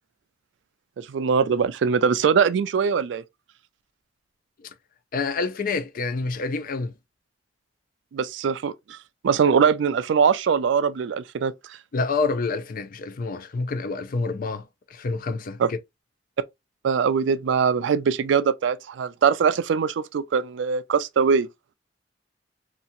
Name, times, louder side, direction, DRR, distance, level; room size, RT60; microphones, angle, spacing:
voice 1, 1.0-3.2 8.1-9.0 9.2-11.5 15.6-15.7 16.8-21.5, right 6 dB, 80° right, 0.3 m, -22 dB
voice 2, 5.1-6.9 11.9-14.6 14.9-15.6, left 4 dB, 50° left, 0.4 m, -27 dB
2.9 x 2.4 x 2.5 m
head